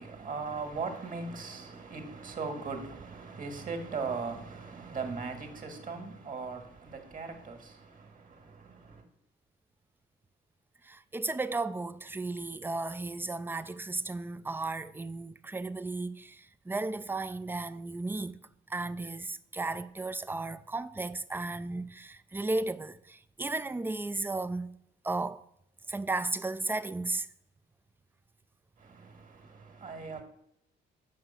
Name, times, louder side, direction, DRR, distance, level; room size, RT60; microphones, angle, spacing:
voice 1, 0.0-9.0 28.8-30.2, right 4 dB, 45° right, 1.7 m, -39 dB
voice 2, 10.8-18.4 18.7-24.8 25.0-25.4 25.9-27.3, right 2 dB, 10° right, 0.4 m, -34 dB
7.7 x 5.4 x 5.5 m
cardioid pair, 90°, 20 cm